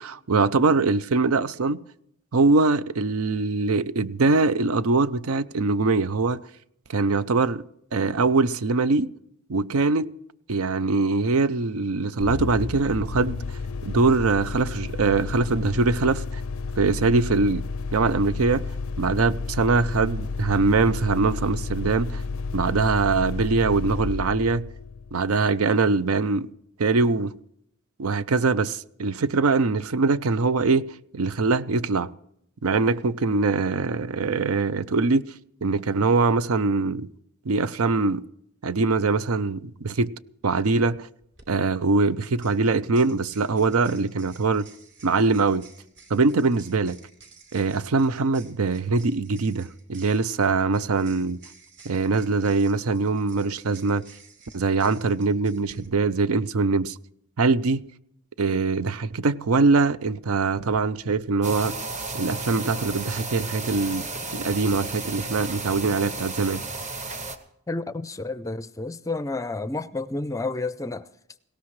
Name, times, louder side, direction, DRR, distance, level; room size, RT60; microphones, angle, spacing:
voice 1, 0.0-1.8 2.3-6.4 6.9-7.6 7.9-9.1 9.5-10.1 10.5-13.4 13.8-16.4 16.8-17.6 17.9-18.6 19.0-22.2 22.5-24.7 25.1-26.5 26.8-27.3 28.0-30.9 31.1-32.1 32.6-35.2 35.6-37.1 37.5-38.2 38.6-40.1 40.4-41.1 41.5-44.7 45.0-45.7 46.1-47.0 47.5-51.4 51.8-54.0 54.5-57.0 57.4-57.8 58.4-61.8 62.1-64.1 64.3-66.6, right 4 dB, 80° right, 0.6 m, -22 dB
sound 1, 12.2-25.7, left 4 dB, 70° left, 0.4 m, -32 dB
sound 2, 41.2-41.4 42.2-55.9, right 5 dB, 50° right, 3.1 m, -53 dB
sound 3, 61.4-67.4, right 3 dB, 30° right, 1.2 m, -33 dB
voice 2, 67.7-71.1, left 2 dB, 15° left, 0.4 m, -30 dB
19.5 x 17.5 x 3.2 m
head